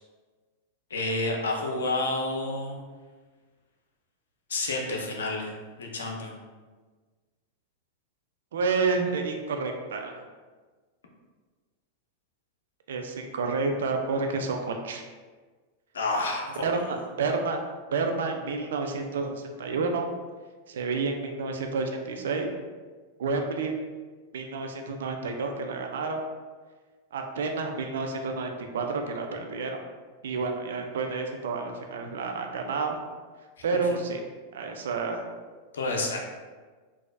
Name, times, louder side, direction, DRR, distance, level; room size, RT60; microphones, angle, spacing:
voice 1, 0.9-2.8 4.5-5.5 5.8-6.3 15.9-16.7 35.7-36.2, left 2 dB, 65° left, 1 dB, 0.5 m, -29 dB
voice 2, 8.5-10.2 12.9-15.0 16.6-17.6 17.9-20.1 20.7-22.5 23.2-23.7 24.3-26.2 27.1-29.8 30.2-33.0 33.6-34.2 34.5-35.2, right 4 dB, 60° right, 3 dB, 0.4 m, -29 dB
3.9 x 2.4 x 2.2 m, 1.4 s
figure-of-eight pair, 90°, 0 cm